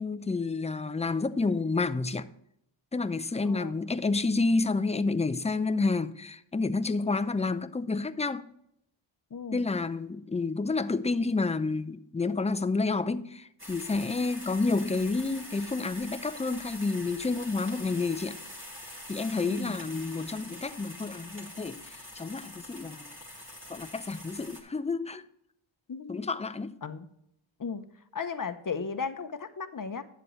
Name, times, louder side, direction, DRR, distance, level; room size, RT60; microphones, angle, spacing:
voice 1, 0.0-2.3 2.9-8.5 9.5-18.4 19.1-23.1 23.7-25.2 26.1-26.7, left 3 dB, 15° left, 0.5 m, -29 dB
voice 2, 3.4-3.8 9.3-9.7 19.5-19.8 25.9-26.2 26.8-27.1 27.6-27.8 28.1-30.0, left 5 dB, 40° left, 0.8 m, -35 dB
sound 1, 13.6-24.6, left 1 dB, 25° right, 2.5 m, -45 dB
11.0 x 7.5 x 3.1 m
cardioid pair, 55°, 49 cm